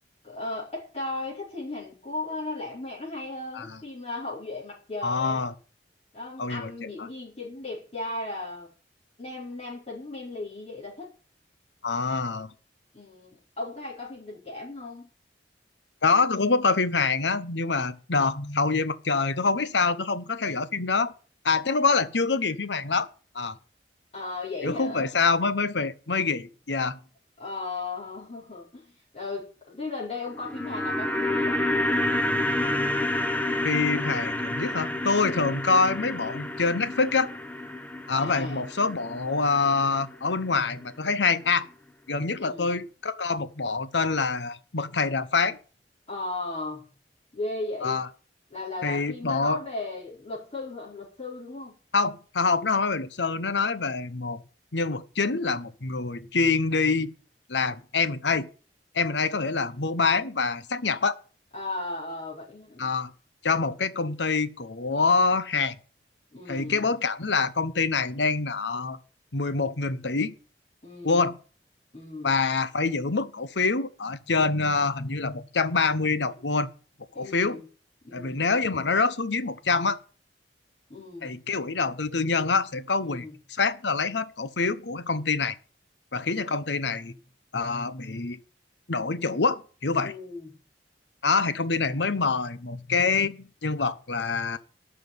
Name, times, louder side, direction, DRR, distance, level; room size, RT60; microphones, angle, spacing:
voice 1, 0.2-5.4 6.1-8.7 9.2-11.1 12.9-15.1 24.1-25.2 27.4-31.6 35.3-35.5 38.1-38.6 42.3-42.7 46.1-46.9 47.3-48.0 48.5-51.7 61.5-63.0 66.3-66.9 70.8-71.3 71.9-72.3 77.1-77.7 78.0-78.5 80.9-81.4 83.0-83.4 90.0-90.5, left 2 dB, 35° left, 4.9 m, -36 dB
voice 2, 5.0-5.5 6.4-6.7 11.8-12.5 16.0-21.1 21.4-23.1 23.3-23.5 24.6-27.0 33.6-37.3 38.1-41.7 42.1-45.6 47.8-48.1 48.8-49.6 51.9-54.4 54.7-57.1 57.5-58.5 58.9-61.2 62.8-63.1 63.4-65.7 66.5-69.0 69.3-70.3 71.0-71.4 72.2-76.7 77.2-77.6 78.1-80.0 81.2-85.5 86.1-87.1 87.5-88.4 88.9-90.1 91.2-94.6, left 4 dB, 85° left, 1.1 m, -26 dB
sound 1, 30.3-40.6 40.8-40.9, left 1 dB, 10° left, 1.1 m, -29 dB
12.5 x 6.3 x 9.4 m
head